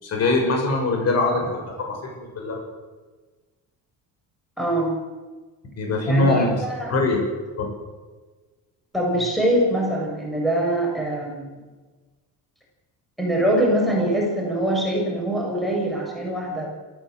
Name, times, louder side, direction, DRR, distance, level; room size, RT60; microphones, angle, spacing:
voice 1, 0.0-2.6 5.8-6.6 6.9-7.2 7.6-7.7, left 2 dB, 45° left, 1 dB, 6.9 m, -22 dB
voice 2, 4.6-4.9 6.1-6.9 8.9-11.5 13.2-16.7, right 1 dB, ahead, -2 dB, 6.8 m, -23 dB
29.5 x 14.5 x 8.0 m, 1.3 s
cardioid pair, 135°, 35 cm